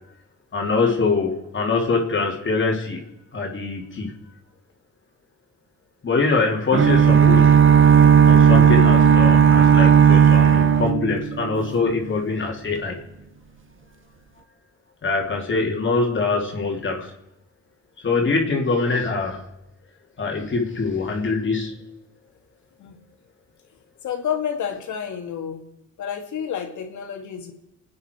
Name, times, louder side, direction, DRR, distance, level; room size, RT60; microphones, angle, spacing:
voice 1, 0.5-3.0 3.3-4.1 6.0-7.6 8.3-13.0 15.0-17.1 18.0-19.4 20.2-21.8, left 4 dB, 40° left, 0 dB, 3.1 m, -23 dB
sound 1, 6.7-11.7, right 7 dB, 40° right, 1.3 m, -14 dB
voice 2, 24.0-25.6 26.0-27.5, left 8 dB, 75° left, 4 dB, 2.6 m, -29 dB
28.0 x 9.6 x 4.7 m, 0.87 s
cardioid pair, 90°, 30 cm